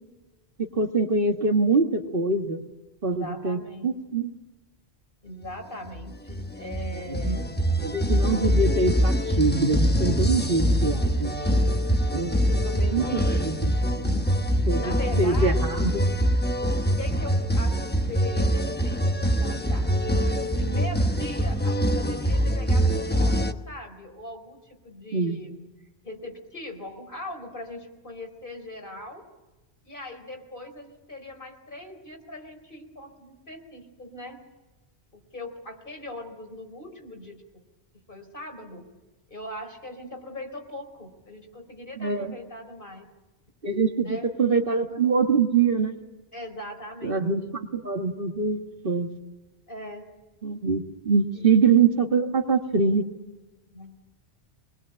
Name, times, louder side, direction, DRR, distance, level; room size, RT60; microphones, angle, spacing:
voice 1, 0.6-2.6 3.0-4.3 7.1-7.4 7.8-11.6 12.1-12.4 12.9-13.0 13.3-13.7 14.7-16.0 25.1-25.4 42.0-42.3 43.6-46.0 47.0-49.1 50.4-53.1, right 4 dB, 55° right, 5 dB, 1.8 m, -24 dB
voice 2, 3.1-3.9 5.2-7.7 12.5-13.5 13.8-14.5 14.8-15.8 16.6-19.9 20.4-25.6 26.0-29.2 29.8-34.4 35.1-37.4 38.1-38.9 39.3-43.1 44.0-44.3 46.3-47.3 49.7-50.1 51.3-51.5 53.7-54.0, left 1 dB, 50° left, 4 dB, 4.5 m, -40 dB
sound 1, 5.9-23.5, equal, 10° left, 1.0 m, -24 dB
24.5 x 21.0 x 8.7 m, 1.1 s
omnidirectional pair, 1.1 m